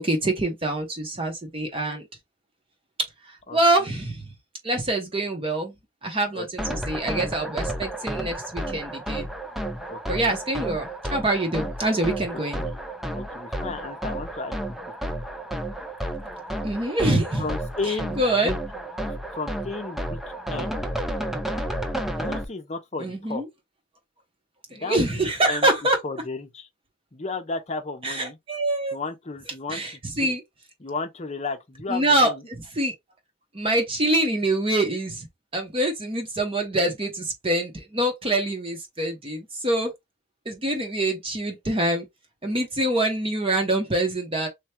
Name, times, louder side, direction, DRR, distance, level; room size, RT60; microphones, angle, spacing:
voice 1, 0.0-2.0 3.3-4.3 4.6-5.7 6.0-9.3 10.1-12.6 16.6-17.4 18.2-18.5 23.0-23.4 24.7-26.0 28.0-29.0 29.7-29.9 30.2-30.4 31.9-32.3 32.8-32.9 33.5-35.3 35.5-39.9 40.5-42.0 42.4-44.5, right 1 dB, 25° right, 0.8 m, -25 dB
voice 2, 3.5-3.9 6.3-6.8 9.9-10.4 12.3-12.8 13.1-14.5 15.1-15.2 17.4-18.6 19.0-20.2 20.5-20.8 22.2-23.4 24.7-25.2 25.5-25.7 26.0-26.7 27.1-28.4 28.9-30.3 30.8-32.5, left 3 dB, 30° left, 0.7 m, -34 dB
sound 1, 6.6-22.4, right 1 dB, ahead, 0.3 m, -32 dB
3.3 x 2.3 x 4.3 m
head